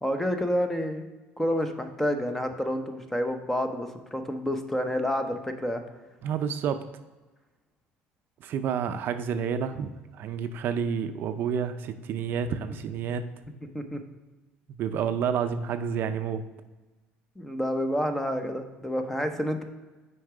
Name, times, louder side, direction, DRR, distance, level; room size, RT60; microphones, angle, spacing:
voice 1, 0.0-1.1 1.4-5.8 13.7-14.0 17.4-19.6, equal, 5° left, 7 dB, 0.7 m, -29 dB
voice 2, 6.2-6.8 8.4-13.3 14.8-16.4, right 7 dB, 55° right, 9 dB, 0.4 m, -29 dB
6.3 x 4.6 x 4.8 m, 1.2 s
cardioid pair, 125°, 4 cm